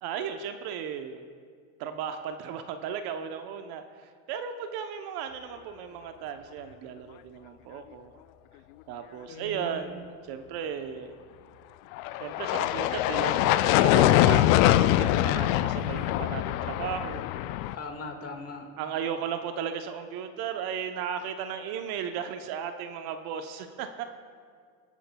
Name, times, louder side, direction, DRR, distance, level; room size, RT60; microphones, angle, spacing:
voice 1, 0.0-1.2 1.8-8.1 8.9-11.1 12.2-17.2 18.8-24.0, right 8 dB, 50° right, 7 dB, 0.9 m, -35 dB
voice 2, 9.3-9.9 17.7-18.7, left 3 dB, 30° left, 4 dB, 1.8 m, -39 dB
sound 1, 11.9-17.8, left 14 dB, 60° left, 0.5 m, -23 dB
23.0 x 10.0 x 2.3 m, 2.1 s
hypercardioid pair, 95°, 48 cm